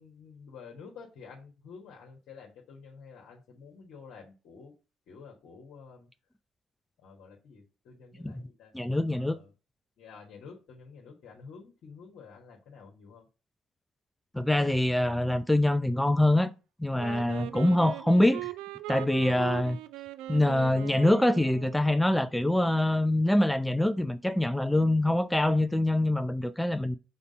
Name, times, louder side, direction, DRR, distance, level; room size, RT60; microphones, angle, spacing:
voice 1, 0.0-4.7 5.1-6.1 7.0-8.7 9.1-9.5 10.0-13.3, left 5 dB, 65° left, 1.4 m, -50 dB
voice 2, 8.7-9.4 14.3-16.5 16.8-18.5 18.9-19.8 20.3-27.0, left 1 dB, 5° left, 0.6 m, -25 dB
Wind instrument woodwind instrument, 17.0-22.0, right 14 dB, 70° right, 0.4 m, -40 dB
5.2 x 4.3 x 5.3 m
hypercardioid pair, 50°, 0 cm